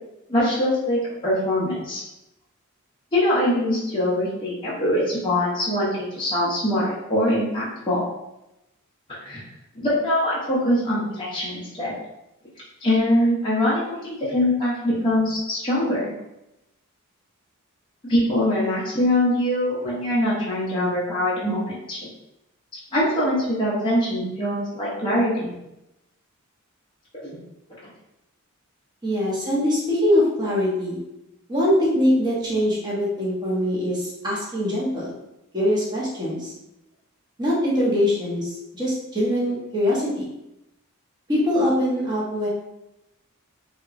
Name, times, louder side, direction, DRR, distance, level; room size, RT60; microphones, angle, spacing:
voice 1, 0.3-2.0 3.1-8.0 9.2-9.4 9.8-11.9 12.8-16.0 18.0-22.0 22.9-25.6 27.2-27.3, left 1 dB, 20° left, -8 dB, 0.5 m, -23 dB
voice 2, 29.0-31.0 31.5-35.2 35.5-36.5 37.4-40.3 41.3-42.5, left 1 dB, 20° right, -6 dB, 0.7 m, -23 dB
2.8 x 2.2 x 2.4 m, 0.89 s
head